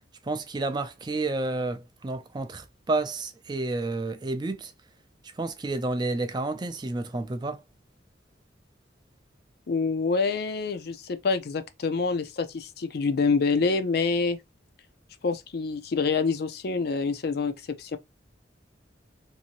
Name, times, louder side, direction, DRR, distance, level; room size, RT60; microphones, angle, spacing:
voice 1, 0.2-4.7 5.4-7.6, right 2 dB, 25° right, 0.4 m, -30 dB
voice 2, 9.7-14.4 15.2-18.0, left 4 dB, 55° left, 0.4 m, -26 dB
2.7 x 2.6 x 2.8 m
head